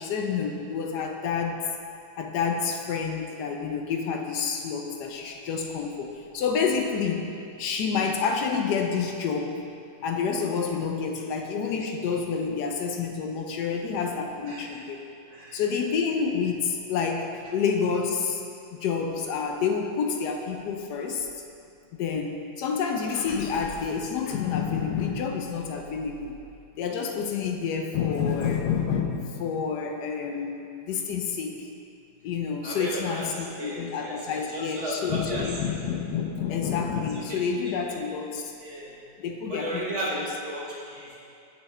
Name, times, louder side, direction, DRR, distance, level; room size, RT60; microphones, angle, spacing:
voice 1, 0.0-1.7 2.2-7.3 7.6-9.6 10.0-15.0 15.5-18.4 18.8-21.3 22.0-26.4 26.8-31.7 32.2-38.5 39.2-39.8 40.1-40.2, left 6 dB, 75° left, 3 dB, 1.1 m, -28 dB
voice 2, 14.5-14.8 15.3-15.6 32.6-35.7 36.9-38.0 38.6-38.9 39.5-40.2 40.4-41.2, right 1 dB, 50° right, -4 dB, 1.1 m, -35 dB
7.6 x 5.6 x 3.2 m, 2.5 s
omnidirectional pair, 1.8 m